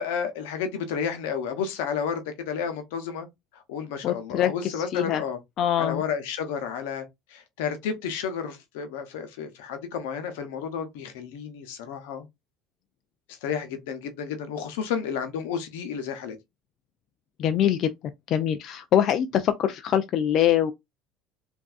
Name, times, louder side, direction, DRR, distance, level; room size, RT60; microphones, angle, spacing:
voice 1, 0.0-3.3 3.5-5.4 5.8-7.1 7.3-12.3 13.3-16.4, left 7 dB, 85° left, 0.7 m, -31 dB
voice 2, 4.0-5.2 5.6-6.0 17.4-17.9 18.3-20.7, left 10 dB, 55° left, 0.3 m, -23 dB
3.2 x 2.6 x 2.4 m
supercardioid pair, 90°, 0 cm